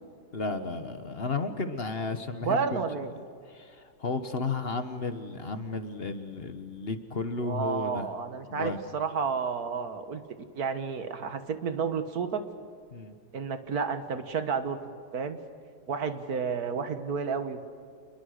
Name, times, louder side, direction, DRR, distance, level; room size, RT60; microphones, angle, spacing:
voice 1, 0.3-2.8 3.5-8.1 8.5-8.8 12.9-13.1, left 3 dB, 40° left, 9 dB, 1.3 m, -33 dB
voice 2, 2.4-3.1 7.4-10.2 10.6-12.4 13.3-15.4 15.9-17.7, right 6 dB, 65° right, 9 dB, 1.9 m, -31 dB
27.5 x 21.5 x 6.6 m, 2.2 s
omnidirectional pair, 1.7 m